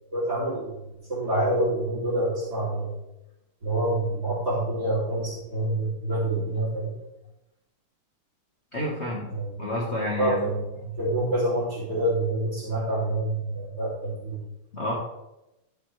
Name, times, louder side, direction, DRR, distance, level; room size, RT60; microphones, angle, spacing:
voice 1, 0.1-0.8 1.1-2.9 3.6-6.9 9.3-9.5 10.2-14.4, right 1 dB, 50° right, -9 dB, 3.5 m, -27 dB
voice 2, 8.7-9.3 9.6-10.4 14.7-14.9, left 1 dB, 35° left, -5 dB, 1.6 m, -29 dB
12.5 x 6.8 x 3.3 m, 0.92 s
omnidirectional pair, 2.4 m